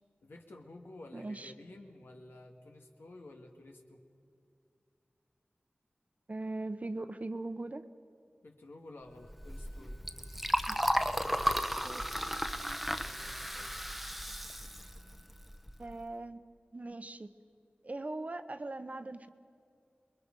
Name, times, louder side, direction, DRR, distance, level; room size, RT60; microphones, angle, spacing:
voice 1, 0.2-4.0 8.4-10.0 12.9-13.7, left 2 dB, 90° left, 2 dB, 2.1 m, -52 dB
voice 2, 1.1-1.5 6.3-7.8 10.7-10.8 11.8-12.0 15.8-16.4 16.7-17.3 17.8-19.3, right 2 dB, 40° right, 10 dB, 0.9 m, -40 dB
Liquid, 9.2-15.9, equal, ahead, 0.9 m, -34 dB
27.5 x 21.5 x 5.4 m, 2.4 s
wide cardioid pair, 70°, 4 cm